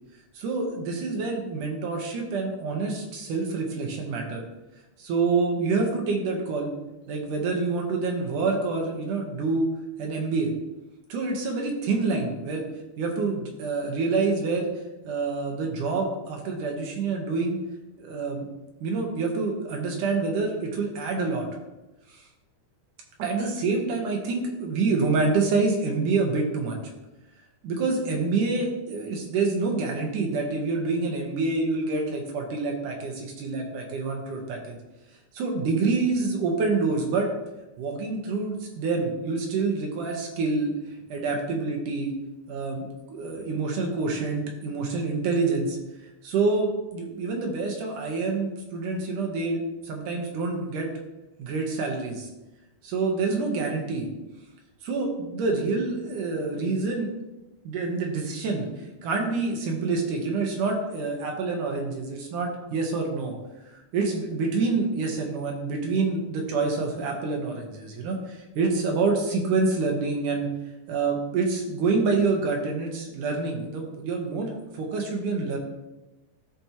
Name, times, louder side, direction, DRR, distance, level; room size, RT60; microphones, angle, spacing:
voice 1, 0.3-4.4 5.0-6.7 7.1-9.7 10.0-10.5 11.1-12.7 13.0-14.7 15.0-17.6 18.0-18.5 18.8-21.5 22.1-22.2 23.2-26.8 27.6-34.8 35.3-37.3 37.8-40.7 41.1-42.1 42.5-45.8 46.2-50.9 51.4-52.3 52.8-54.1 54.8-57.1 57.6-58.7 59.0-63.4 63.7-70.5 70.9-75.6, right 3 dB, 65° right, 1 dB, 2.3 m, -27 dB
14.0 x 5.2 x 3.0 m, 1.0 s
omnidirectional pair, 4.6 m